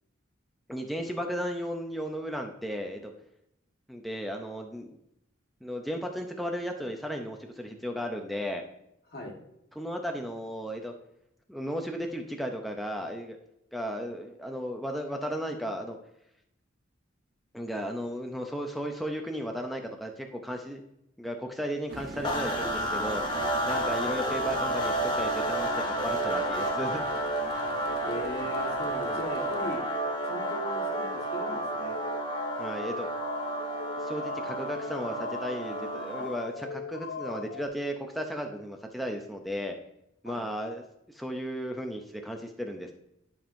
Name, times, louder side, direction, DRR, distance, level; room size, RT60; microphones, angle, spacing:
voice 1, 0.7-3.1 3.9-5.0 5.6-8.6 9.8-10.9 11.5-13.4 13.7-16.0 17.5-20.8 21.2-23.2 23.6-27.0 32.6-33.1 34.0-39.8 40.2-40.8 41.1-42.9, equal, ahead, 2 dB, 0.5 m, -35 dB
sound 1, 21.9-29.8, right 2 dB, 55° right, 0.9 m, -45 dB
sound 2, 22.2-36.4, right 2 dB, 25° left, 1.0 m, -31 dB
sound 3, 23.7-37.7, left 6 dB, 75° left, 0.6 m, -39 dB
voice 2, 23.7-24.0 28.0-29.8 30.2-32.0 40.2-40.5, equal, 55° left, -2 dB, 1.5 m, -39 dB
11.5 x 5.3 x 2.5 m, 0.80 s
head